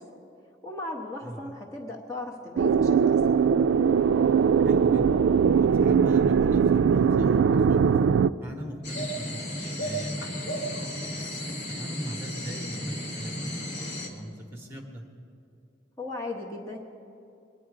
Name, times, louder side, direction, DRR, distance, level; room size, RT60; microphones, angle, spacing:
voice 1, 0.6-3.2 16.0-16.8, left 2 dB, 15° left, -2 dB, 1.1 m, -36 dB
voice 2, 1.2-1.5 4.6-5.2 5.6-8.0 8.4-11.3 11.7-15.0, right 1 dB, 15° right, 1 dB, 1.3 m, -40 dB
sound 1, 2.6-8.3, right 6 dB, 85° right, 0.3 m, -21 dB
sound 2, 8.8-14.1, equal, 65° left, 1.8 m, -34 dB
22.0 x 10.0 x 4.9 m, 2.6 s
head